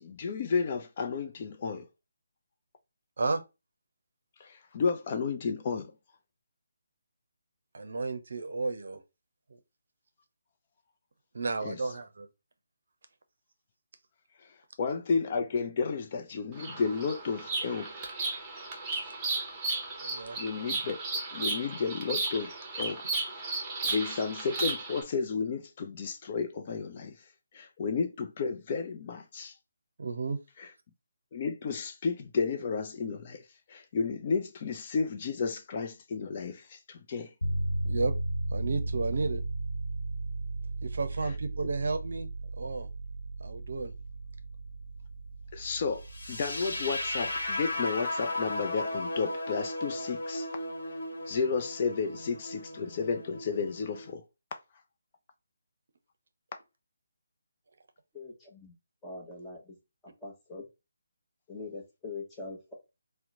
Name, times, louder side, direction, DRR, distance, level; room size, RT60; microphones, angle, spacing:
voice 1, 0.0-1.8 4.4-5.9 11.6-11.8 14.8-17.9 20.4-21.0 21.3-23.4 23.9-27.1 27.5-29.5 31.3-33.4 33.7-37.3 45.5-46.0 46.3-50.5 51.3-54.2, left 5 dB, 35° left, 0.5 m, -32 dB
voice 2, 7.7-9.0 9.5-9.6 11.3-12.3 19.0-19.1 20.0-20.4 30.0-30.4 37.8-38.1 38.5-39.4 40.8-42.3 42.6-42.9 43.4-43.9, right 3 dB, 65° right, 0.6 m, -32 dB
Bird vocalization bird call bird song, 16.5-25.0, right 3 dB, 15° right, 0.9 m, -34 dB
sound 1, 37.4-47.5, right 2 dB, 90° left, 0.9 m, -35 dB
sound 2, 46.1-54.1, left 2 dB, 70° left, 1.0 m, -36 dB
voice 3, 58.1-58.7 59.0-59.7 60.2-60.7 61.5-62.7, left 3 dB, 10° left, 1.0 m, -42 dB
2.9 x 2.1 x 3.7 m
figure-of-eight pair, 155°, 0 cm